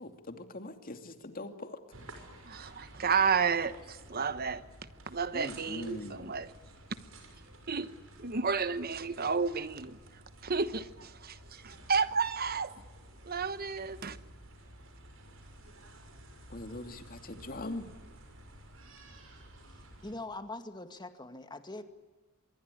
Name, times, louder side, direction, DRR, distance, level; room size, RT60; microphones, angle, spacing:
voice 1, 0.0-1.8 5.3-6.4 16.5-17.9, left 1 dB, 45° left, 2.6 m, -42 dB
sound 1, 1.9-20.2, right 1 dB, 85° right, 6.5 m, -53 dB
voice 2, 2.5-4.6 5.1-6.5 7.7-7.9 8.2-10.0 10.4-12.7 13.2-14.2, right 5 dB, 50° right, 1.1 m, -31 dB
voice 3, 20.0-21.8, left 2 dB, 20° left, 2.1 m, -42 dB
26.0 x 23.0 x 9.9 m
head